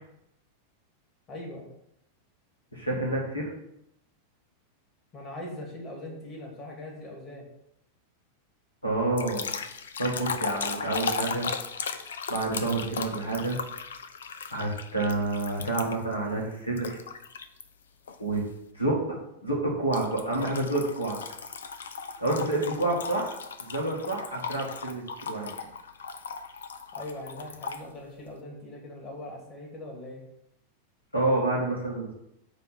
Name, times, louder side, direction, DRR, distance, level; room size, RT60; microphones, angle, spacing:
voice 1, 1.3-1.7 5.1-7.5 26.9-30.2, left 1 dB, 30° left, 0 dB, 2.5 m, -41 dB
voice 2, 2.7-3.5 8.8-9.5 10.0-11.5 12.3-13.6 14.5-17.0 18.2-18.4 18.7-21.2 22.2-25.6 31.1-32.1, right 2 dB, 85° left, -2 dB, 2.1 m, -28 dB
sound 1, 9.2-16.1 16.8-17.6 18.1-18.4 19.9-27.8, left 5 dB, 65° left, 0.5 m, -36 dB
8.9 x 3.4 x 6.0 m, 0.79 s
figure-of-eight pair, 90°, 0 cm